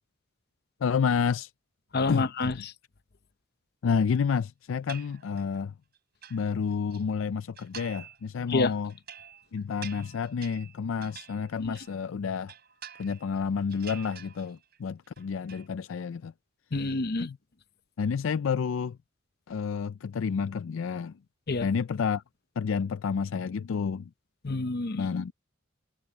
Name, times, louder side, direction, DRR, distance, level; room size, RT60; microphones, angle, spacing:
voice 1, 0.8-1.5 2.1-2.2 3.8-5.7 6.3-8.9 9.5-12.5 13.0-16.3 17.2-17.4 18.0-19.0 19.5-21.1 21.6-22.2 22.6-24.1 24.9-25.3, left 6 dB, 75° left, 0.4 m, -29 dB
voice 2, 1.9-2.7 8.5-8.7 11.6-11.8 16.7-17.3 21.5-21.7 24.4-25.1, left 3 dB, 55° left, 0.8 m, -28 dB
sound 1, 4.9-5.6 6.0-7.0 7.6-8.2 8.5-12.0 12.3-13.4 13.7-14.8 15.0-15.7, right 9 dB, 55° right, 5.4 m, -47 dB
head